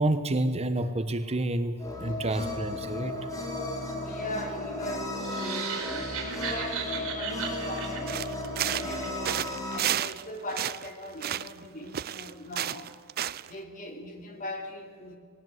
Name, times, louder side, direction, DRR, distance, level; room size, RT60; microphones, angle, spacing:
voice 1, 0.0-3.3, right 1 dB, 30° right, 9 dB, 0.9 m, -29 dB
sound 1, 1.8-9.8, left 1 dB, 15° left, 2.8 m, -35 dB
voice 2, 4.0-8.2 8.6-12.9 13.4-15.2, left 1 dB, 40° left, 3 dB, 2.9 m, -40 dB
sound 2, 5.2-9.4, right 6 dB, 65° right, 4.4 m, -36 dB
sound 3, 8.1-9.0 9.2-10.2 10.5-11.7 11.9-13.5, right 11 dB, 45° right, 0.4 m, -31 dB
19.0 x 18.5 x 7.9 m, 2.1 s
head